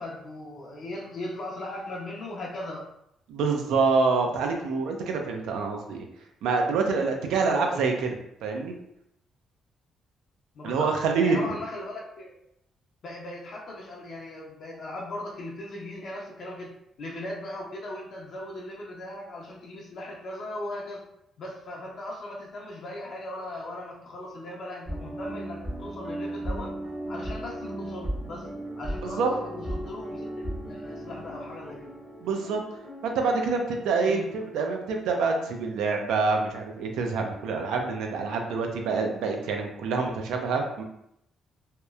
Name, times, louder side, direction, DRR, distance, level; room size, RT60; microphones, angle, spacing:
voice 1, 0.0-2.9 7.4-7.8 10.5-10.9 11.2-12.4 13.0-21.0 21.4-26.8 27.1-28.5 28.7-31.9 34.1-34.3, left 1 dB, 60° left, -2 dB, 0.5 m, -38 dB
voice 2, 3.3-6.1 6.4-8.1 8.4-8.7 10.6-11.6 29.0-29.3 32.2-32.6 33.0-40.8, right 4 dB, 85° right, 3 dB, 0.4 m, -26 dB
sound 1, 24.8-36.3 36.5-36.6, right 1 dB, 20° right, 0.7 m, -37 dB
2.8 x 2.0 x 2.3 m, 0.77 s
cardioid pair, 90°, 0 cm